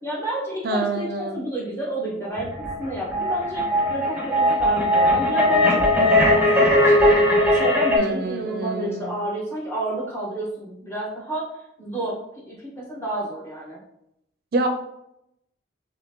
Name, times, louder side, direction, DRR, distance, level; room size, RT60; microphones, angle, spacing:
voice 1, 0.0-2.5 2.8-12.2 12.5-13.8, right 1 dB, 15° left, -6 dB, 1.3 m, -30 dB
voice 2, 0.6-1.4 8.0-9.2 14.5-14.7, right 3 dB, 55° right, 4 dB, 0.4 m, -26 dB
sound 1, 2.4-8.0, left 1 dB, 10° right, 1.1 m, -19 dB
4.2 x 3.2 x 2.9 m, 0.81 s
head